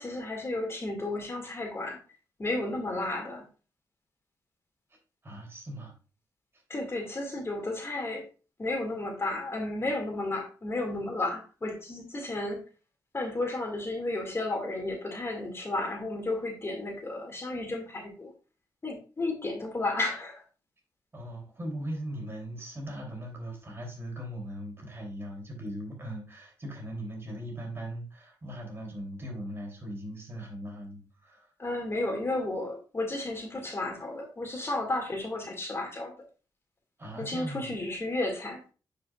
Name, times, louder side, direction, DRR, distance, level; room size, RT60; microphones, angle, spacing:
voice 1, 0.0-2.0 2.4-3.5 6.7-8.3 8.6-12.6 13.1-18.3 18.8-20.4 31.6-36.1 37.2-38.6, left 2 dB, 35° left, 2 dB, 2.1 m, -33 dB
voice 2, 5.2-5.9 6.5-6.6 21.1-31.5 37.0-37.8, equal, 30° right, 1 dB, 3.0 m, -39 dB
9.2 x 5.1 x 2.4 m, 0.35 s
cardioid pair, 80°, 8 cm